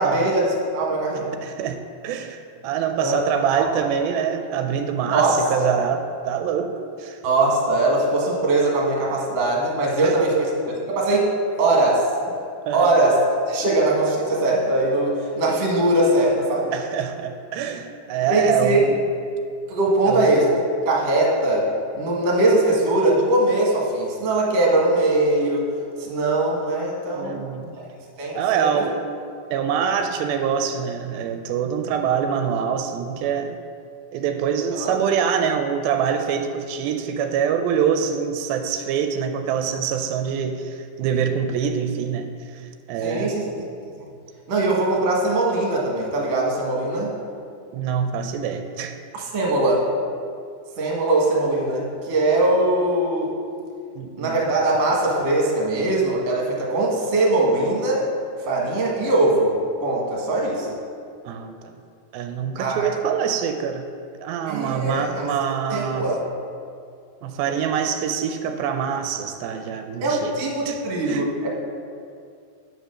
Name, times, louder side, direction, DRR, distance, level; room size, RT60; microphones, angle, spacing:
voice 1, 0.0-1.3 3.0-3.2 3.6-3.7 5.1-5.7 7.2-11.3 11.6-12.1 12.7-13.2 13.5-16.7 18.3-18.8 19.7-20.5 20.9-25.7 26.0-27.4 27.8-27.9 28.2-28.7 34.8-34.9 43.0-43.5 44.5-47.1 49.1-49.9 50.8-53.3 54.2-58.1 58.5-59.5 59.8-60.7 62.6-62.9 64.5-65.3 65.7-66.2 70.0-71.5, right 2 dB, 55° right, -2 dB, 2.3 m, -21 dB
voice 2, 1.4-1.8 2.0-7.2 10.0-10.2 12.7-13.0 16.7-19.0 20.1-20.3 27.1-27.7 28.4-29.0 29.5-33.6 34.1-42.6 42.9-43.3 47.7-48.9 54.0-54.4 61.3-61.7 62.1-63.8 64.2-66.1 67.2-70.3 70.7-70.8 71.1-71.2, right 7 dB, 90° right, 6 dB, 2.5 m, -25 dB
9.2 x 5.2 x 6.3 m, 2.3 s
omnidirectional pair, 4.2 m